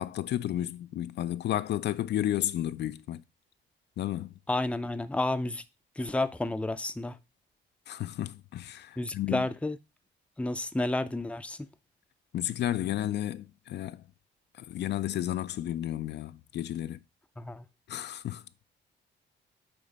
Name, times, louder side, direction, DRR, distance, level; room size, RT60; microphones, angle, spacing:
voice 1, 0.0-3.2 4.0-4.3 7.9-9.5 12.3-14.0 14.6-17.0 17.9-18.4, left 12 dB, 60° left, 0.4 m, -32 dB
voice 2, 4.5-5.6 6.0-7.2 9.0-9.8 10.4-11.7 17.4-17.6, left 2 dB, 5° left, 0.5 m, -31 dB
8.6 x 3.2 x 4.0 m
cardioid pair, 90°, 20 cm